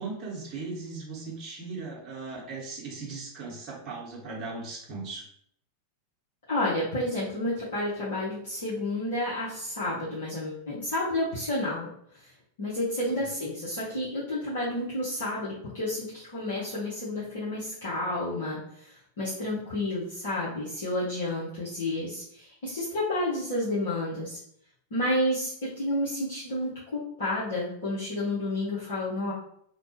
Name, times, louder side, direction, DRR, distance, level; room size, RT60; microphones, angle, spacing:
voice 1, 0.0-5.2 13.1-13.2, right 3 dB, 35° right, -3 dB, 0.9 m, -38 dB
voice 2, 6.5-11.9 12.6-24.4 24.9-29.3, left 1 dB, 60° left, -9 dB, 0.9 m, -30 dB
2.9 x 2.2 x 2.9 m, 0.68 s
figure-of-eight pair, 90°, 0 cm